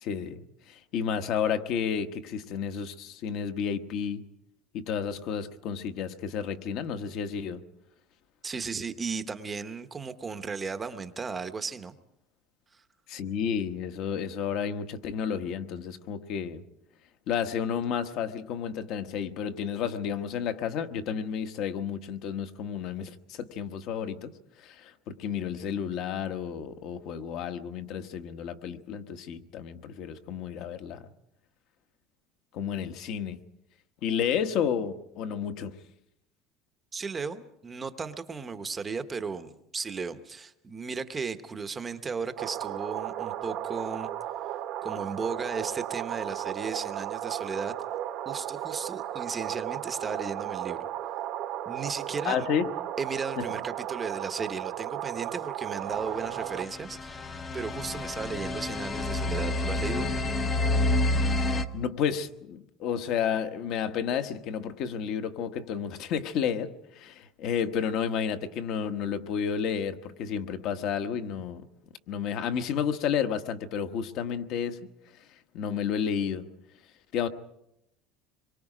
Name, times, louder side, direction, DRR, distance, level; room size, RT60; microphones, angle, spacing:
voice 1, 0.0-4.2 4.7-7.6 13.1-16.6 17.3-24.3 24.6-31.0 32.5-33.4 34.0-35.8 52.2-52.7 53.4-53.5 61.7-71.7 72.1-74.8 75.5-76.5 77.1-77.3, left 7 dB, 45° left, 9 dB, 1.2 m, -31 dB
voice 2, 8.4-11.9 12.7-12.8 36.9-44.1 44.8-47.7 48.3-50.8 51.7-52.5 53.0-60.1, right 5 dB, 15° right, 10 dB, 0.9 m, -35 dB
sound 1, 42.4-56.7, right 12 dB, 45° right, 0.9 m, -35 dB
sound 2, 56.2-61.6, left 2 dB, 15° left, 0.8 m, -28 dB
26.0 x 23.0 x 5.0 m, 0.81 s
cardioid pair, 180°, 0 cm